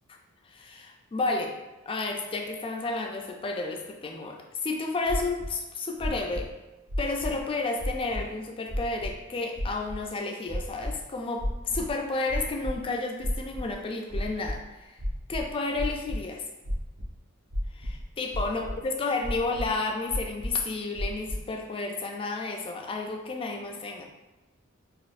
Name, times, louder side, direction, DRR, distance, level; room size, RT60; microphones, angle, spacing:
voice 1, 0.5-1.6 1.9-6.5 7.0-15.0 15.3-16.4 17.7-24.0, left 3 dB, 25° left, 3 dB, 0.3 m, -31 dB
sound 1, 5.1-5.5 6.0-6.4 6.9-7.4 7.8-8.2 8.7-9.1 9.6-10.0 10.5-10.9 11.4-11.9 12.3-12.7 13.2-13.7 14.1-14.5 15.0-16.2 16.6-17.1 17.5-18.0 18.3-18.8 19.2-19.7 20.1-20.6 20.9-21.4, equal, 60° right, 1.0 m, -31 dB
4.1 x 2.5 x 2.5 m, 1.1 s
head